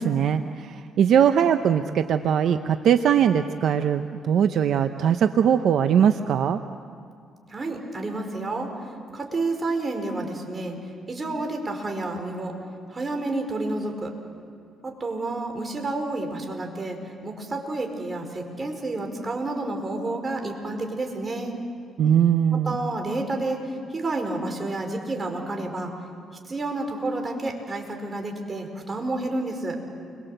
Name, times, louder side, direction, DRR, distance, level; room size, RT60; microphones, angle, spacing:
voice 1, 0.0-6.6 22.0-22.8, right 8 dB, 70° right, 8 dB, 0.8 m, -21 dB
voice 2, 7.5-8.7 9.1-10.8 11.1-12.5 12.9-14.1 14.8-17.0 17.2-21.5 22.5-23.6 23.9-25.9 26.5-29.8, right 2 dB, 30° right, 3 dB, 5.0 m, -30 dB
29.5 x 23.5 x 8.0 m, 2.3 s
cardioid pair, 90°, 0 cm